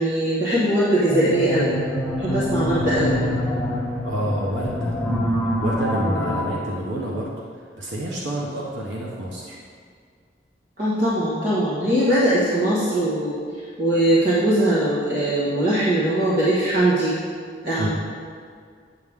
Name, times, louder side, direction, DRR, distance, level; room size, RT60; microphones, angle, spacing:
voice 1, 0.0-1.8 2.2-3.2 6.0-6.4 10.8-13.4 13.8-17.2 17.6-17.9, right 1 dB, 45° right, -10 dB, 1.5 m, -21 dB
sound 1, 1.1-6.5, left 1 dB, 5° left, 0.9 m, -25 dB
voice 2, 4.0-5.0 5.6-7.3 7.8-9.6 17.8-17.9, right 1 dB, 90° right, -3 dB, 1.1 m, -28 dB
8.3 x 7.9 x 3.6 m, 2.1 s
head